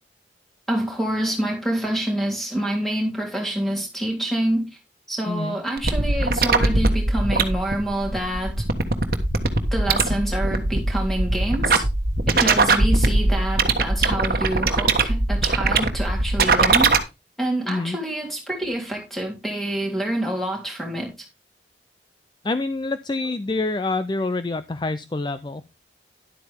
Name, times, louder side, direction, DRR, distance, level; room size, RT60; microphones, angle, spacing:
voice 1, 0.7-4.7 5.1-8.5 9.4-11.8 12.3-17.0 17.4-21.1, right 1 dB, ahead, 3.3 m, -27 dB
sound 1, 5.8-17.0, right 3 dB, 55° right, 1.4 m, -20 dB
voice 2, 17.7-18.0 22.4-25.6, left 3 dB, 25° left, 0.4 m, -26 dB
11.5 x 8.3 x 3.5 m
head